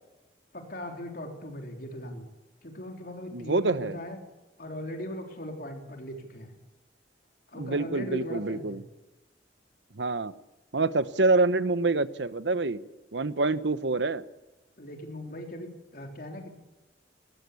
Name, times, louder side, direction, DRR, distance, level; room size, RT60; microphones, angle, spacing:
voice 1, 0.5-2.3 2.6-4.2 4.6-6.6 7.5-8.8 14.8-16.5, left 1 dB, 55° left, 3 dB, 3.7 m, -39 dB
voice 2, 3.3-4.0 7.6-8.8 10.0-10.3 10.7-12.8 13.1-14.2, right 3 dB, 80° right, 14 dB, 1.0 m, -26 dB
21.0 x 18.5 x 8.5 m, 1.0 s
head